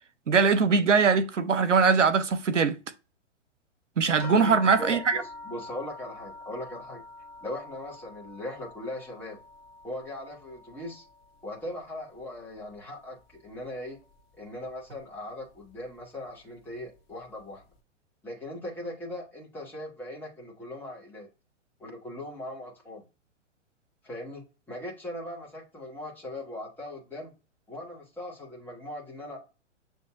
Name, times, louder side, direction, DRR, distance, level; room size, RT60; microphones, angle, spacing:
voice 1, 0.3-2.8 4.0-5.2, right 5 dB, 80° right, 0.7 m, -22 dB
sound 1, 4.2-13.0 13.3-14.2 15.0-15.1 15.5-15.6, left 2 dB, 55° left, 0.9 m, -46 dB
voice 2, 4.2-7.0 7.4-9.4 9.8-11.0 11.4-14.0 14.4-17.6 18.2-21.3 21.8-23.0 24.0-27.3 27.7-29.4, left 1 dB, 5° left, 1.3 m, -39 dB
7.0 x 2.8 x 2.4 m
figure-of-eight pair, 115°, 36 cm